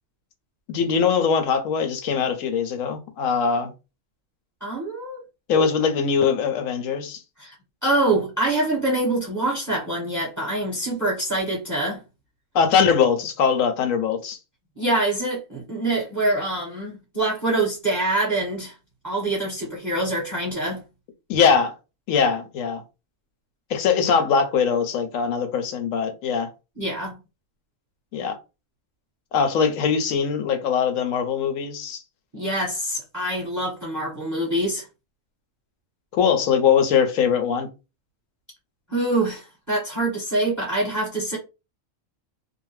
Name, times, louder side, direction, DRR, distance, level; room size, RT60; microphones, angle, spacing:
voice 1, 0.7-3.7 5.5-7.2 12.5-14.4 21.3-21.7 22.1-22.8 23.7-26.5 28.1-28.4 29.3-32.0 36.1-37.7, left 6 dB, 75° left, 1.0 m, -21 dB
voice 2, 4.6-5.2 7.4-7.5 7.8-12.0 14.8-18.7 19.0-20.8 26.8-27.2 32.3-34.9 38.9-41.4, right 2 dB, 15° right, 1.0 m, -25 dB
2.7 x 2.0 x 3.0 m
omnidirectional pair, 1.4 m